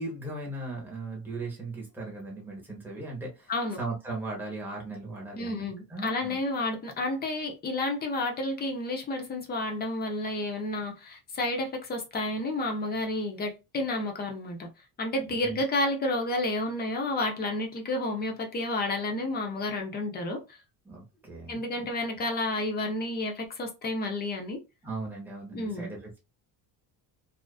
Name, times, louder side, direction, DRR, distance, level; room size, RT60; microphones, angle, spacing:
voice 1, 0.0-3.5 3.8-6.4 15.3-15.6 20.8-21.9 24.8-26.2, right 2 dB, 5° right, 0.7 m, -38 dB
voice 2, 5.4-14.7 15.0-20.6 21.5-24.6 25.5-25.9, left 2 dB, 25° left, 0.3 m, -31 dB
2.4 x 2.3 x 2.3 m
cardioid pair, 175°, 47 cm